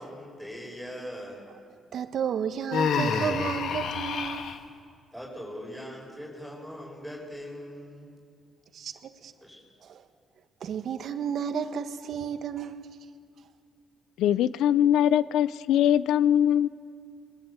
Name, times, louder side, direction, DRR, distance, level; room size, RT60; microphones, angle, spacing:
voice 1, 0.0-1.5 5.1-8.2 9.4-9.6, equal, ahead, -2 dB, 6.2 m, -41 dB
voice 2, 1.9-4.5 8.7-9.3 9.8-10.0 10.6-12.9, right 7 dB, 65° right, 8 dB, 1.5 m, -32 dB
Human voice, 2.7-4.6, left 6 dB, 70° left, 1.7 m, -28 dB
voice 3, 14.2-16.7, left 10 dB, 90° left, 16 dB, 0.6 m, -22 dB
26.0 x 21.0 x 8.3 m, 2.2 s
cardioid pair, 90°, 0 cm